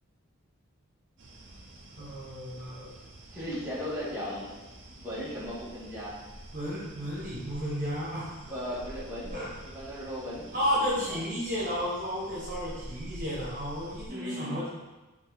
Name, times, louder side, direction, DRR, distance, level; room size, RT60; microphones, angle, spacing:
sound 1, 1.2-14.1, right 1 dB, 55° right, 1.0 m, -47 dB
voice 1, 2.0-2.9 6.5-8.4 8.7-8.8 9.3-9.5 10.5-14.7, equal, 35° right, -8 dB, 1.9 m, -32 dB
voice 2, 3.3-4.5 4.9-6.1 8.5-10.6 11.0-11.2 14.1-14.6, equal, 10° right, -11 dB, 2.0 m, -37 dB
5.8 x 4.0 x 4.2 m, 1.1 s
head